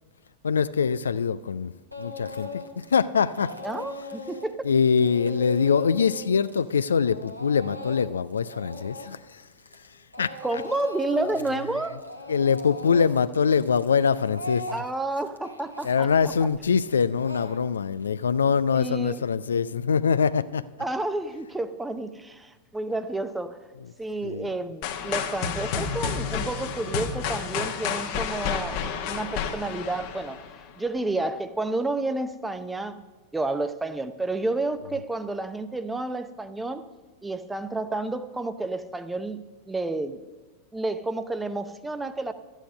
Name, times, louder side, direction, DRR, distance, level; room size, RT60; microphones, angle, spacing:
voice 1, 0.4-1.7 2.0-3.5 4.6-9.4 10.2-10.3 12.3-14.8 15.8-20.6 24.2-24.5, left 6 dB, 70° left, 0.3 m, -23 dB
Speech / Crying sobbing, 1.9-2.9 3.2-9.9 10.1-11.6 11.8-18.1, left 2 dB, 90° left, 1.1 m, -39 dB
voice 2, 3.6-4.7 10.4-12.0 14.7-16.1 18.7-19.2 20.8-23.6 24.0-30.4 30.8-33.0 33.3-36.8 37.2-39.4 39.7-40.2 40.7-42.3, right 2 dB, 10° right, 0.6 m, -30 dB
sound 1, 24.8-30.7, left 7 dB, 45° left, 1.1 m, -30 dB
12.5 x 9.0 x 5.2 m
figure-of-eight pair, 90°, 0 cm